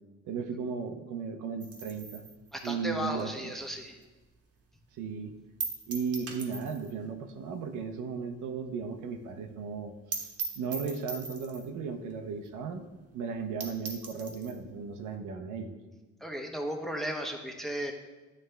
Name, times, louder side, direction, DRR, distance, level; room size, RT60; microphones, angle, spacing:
voice 1, 0.2-2.3 2.6-3.5 5.0-5.3 5.9-9.9 10.2-10.3 10.6-12.9 13.1-15.8, right 5 dB, 85° right, 6 dB, 0.7 m, -36 dB
sound 1, 1.6-4.2 4.6-4.7 5.0-5.1 5.6-7.0 7.3-7.4 7.7-7.8 8.2-8.3 8.5-8.6 8.9-9.0 9.3-9.4 9.7-9.8 10.1-11.8 12.4-12.5 12.9-13.0 13.3-13.4 13.6-14.6, right 5 dB, 50° right, 0.9 m, -40 dB
voice 2, 2.5-4.0 16.2-17.9, equal, ahead, 2 dB, 0.8 m, -35 dB
9.1 x 3.3 x 3.3 m, 1.2 s
cardioid pair, 90°, 30 cm